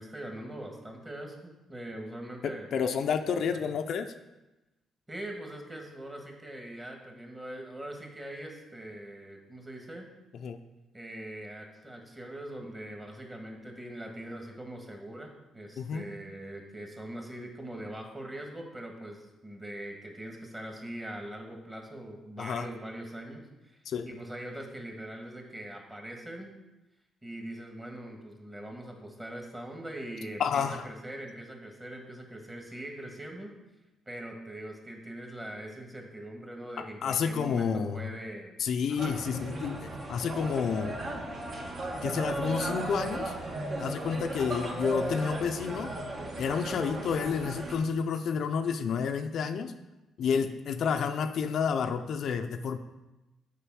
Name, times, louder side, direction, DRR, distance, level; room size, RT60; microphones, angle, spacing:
voice 1, 0.0-2.7 5.1-10.1 10.9-23.8 24.1-26.6 27.2-33.5 34.1-38.6 38.9-39.1 44.1-44.3 46.7-46.9 50.2-50.5, right 1 dB, 15° right, 2 dB, 1.7 m, -42 dB
voice 2, 2.4-4.1 10.4-10.6 15.8-16.0 22.4-22.7 23.9-24.1 30.4-30.9 37.0-38.1 38.6-41.0 42.0-43.3 43.8-45.9 46.4-49.7 50.2-52.8, left 6 dB, 65° left, 6 dB, 0.5 m, -30 dB
sound 1, 39.0-47.8, right 1 dB, 45° right, 1.4 m, -36 dB
6.7 x 5.0 x 6.2 m, 1.0 s
cardioid pair, 90°, 0 cm